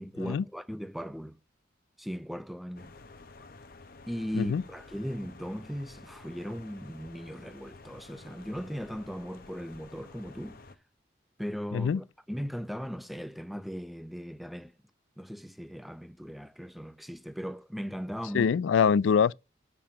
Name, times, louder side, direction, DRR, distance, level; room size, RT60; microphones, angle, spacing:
voice 1, 0.0-1.4 2.0-2.9 4.1-10.6 11.4-14.7 15.2-18.5, equal, ahead, 0.5 m, -38 dB
sound 1, 2.8-10.8, left 3 dB, 50° left, 0.8 m, -51 dB
voice 2, 18.3-19.3, left 7 dB, 80° left, 0.3 m, -24 dB
6.7 x 5.5 x 5.7 m
head